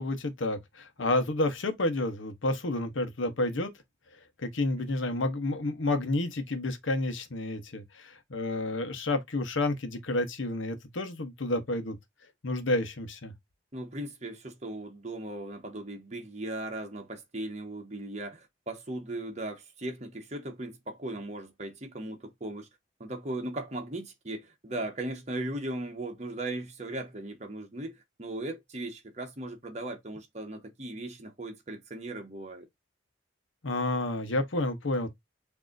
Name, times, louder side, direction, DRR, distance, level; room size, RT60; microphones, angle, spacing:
voice 1, 0.0-3.7 4.4-12.0 12.4-13.3 33.6-35.1, left 2 dB, 75° left, 1.0 m, -30 dB
voice 2, 13.7-22.7 23.0-32.7, right 1 dB, 35° right, 1.1 m, -38 dB
6.2 x 2.8 x 2.5 m
head